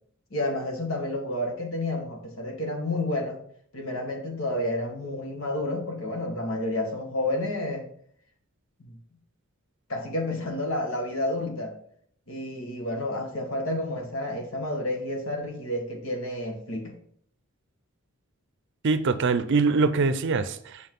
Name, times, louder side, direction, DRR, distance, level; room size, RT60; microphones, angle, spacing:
voice 1, 0.3-3.4 3.7-7.9 8.9-9.0 9.9-11.7 12.3-16.9, left 1 dB, 70° left, 2 dB, 1.6 m, -30 dB
voice 2, 18.8-20.9, right 4 dB, 60° right, 12 dB, 0.5 m, -23 dB
6.2 x 5.5 x 3.8 m, 0.63 s
head